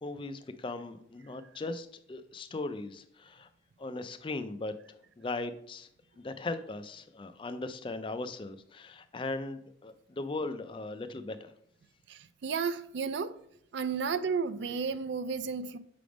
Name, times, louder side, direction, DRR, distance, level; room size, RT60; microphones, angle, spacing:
voice 1, 0.0-3.5 3.8-4.7 5.2-5.9 6.2-11.5, left 2 dB, 25° left, 0.4 m, -38 dB
voice 2, 12.1-13.4 13.7-15.8, right 5 dB, 65° right, 0.4 m, -33 dB
5.9 x 3.4 x 5.0 m
head